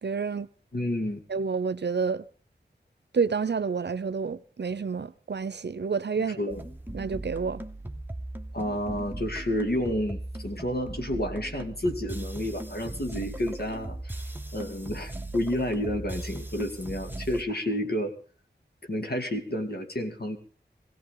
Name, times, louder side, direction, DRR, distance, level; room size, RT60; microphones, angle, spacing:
voice 1, 0.0-0.5 1.3-2.2 3.1-6.5 6.9-7.6, right 5 dB, 75° right, 0.7 m, -29 dB
voice 2, 0.7-1.2 6.4-6.6 8.5-18.1 18.9-20.4, left 1 dB, 60° left, 2.6 m, -30 dB
sound 1, 6.5-17.4, right 1 dB, 10° right, 1.2 m, -38 dB
19.0 x 17.0 x 3.9 m
wide cardioid pair, 60°, 18 cm